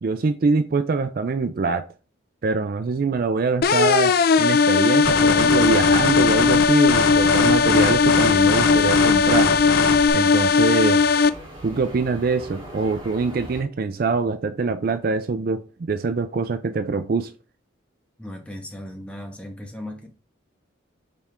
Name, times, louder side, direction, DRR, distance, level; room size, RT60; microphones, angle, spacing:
voice 1, 0.0-1.9 2.4-9.6 10.1-11.1 11.6-17.3, right 4 dB, 45° right, 0.4 m, -24 dB
sound 1, 3.6-11.3, left 5 dB, 50° left, 0.3 m, -18 dB
sound 2, 5.0-10.1, left 4 dB, 85° left, 0.8 m, -25 dB
sound 3, 5.4-13.6, equal, 30° right, 3.2 m, -41 dB
voice 2, 18.2-20.1, left 1 dB, 5° left, 1.3 m, -37 dB
6.8 x 4.3 x 3.5 m
head